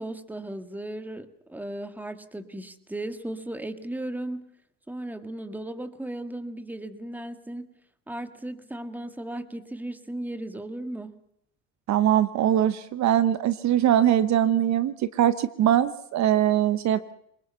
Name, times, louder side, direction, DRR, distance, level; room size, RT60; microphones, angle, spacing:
voice 1, 0.0-4.5 4.9-7.7 8.1-11.2, right 1 dB, 5° right, 9 dB, 1.8 m, -36 dB
voice 2, 11.9-17.1, right 11 dB, 55° right, 13 dB, 1.1 m, -22 dB
24.0 x 21.0 x 5.7 m, 0.73 s
supercardioid pair, 100°, 35 cm